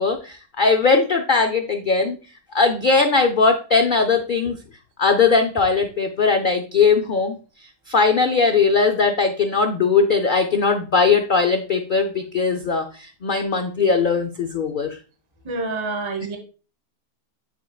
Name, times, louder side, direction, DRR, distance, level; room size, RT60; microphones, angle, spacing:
voice 1, 0.0-2.2 2.5-4.6 5.0-7.4 7.9-15.0, left 4 dB, 65° left, 5 dB, 0.5 m, -19 dB
voice 2, 15.4-16.4, right 3 dB, 20° right, 4 dB, 0.9 m, -27 dB
9.2 x 4.5 x 2.3 m, 0.36 s
omnidirectional pair, 1.6 m